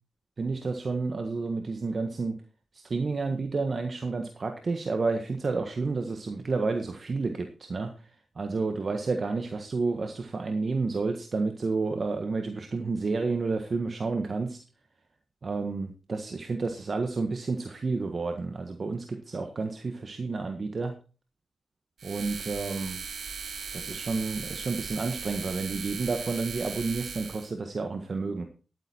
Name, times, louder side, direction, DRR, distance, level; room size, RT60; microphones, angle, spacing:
voice 1, 0.4-2.4 2.7-14.6 15.4-20.9 22.0-23.0 23.7-28.5, right 3 dB, 55° right, 6 dB, 1.6 m, -30 dB
sound 1, 22.0-27.5, right 6 dB, 75° right, 1.7 m, -38 dB
11.5 x 9.3 x 4.5 m, 0.36 s
supercardioid pair, 40°, 0 cm